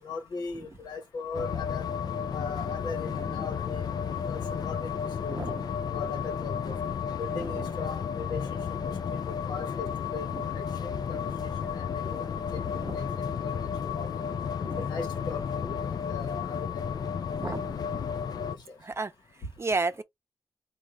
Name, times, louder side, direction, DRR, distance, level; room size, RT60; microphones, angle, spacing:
voice 1, 0.0-1.9 2.3-5.4 5.9-6.7 7.2-8.4 9.1-9.9 10.1-10.3 10.5-11.3 11.6-13.1 13.4-13.7 14.0-14.1 14.8-16.8 17.4-17.6, left 4 dB, 85° left, 1.1 m, -39 dB
sound 1, 1.3-18.5, left 7 dB, 70° left, 0.4 m, -32 dB
voice 2, 5.3-5.7 7.3-7.7 10.3-10.4 12.8-13.0 14.6-14.8 17.4-17.7 18.8-19.1 19.6-20.0, right 3 dB, 40° right, 0.6 m, -32 dB
3.7 x 2.4 x 3.0 m
cardioid pair, 55°, 7 cm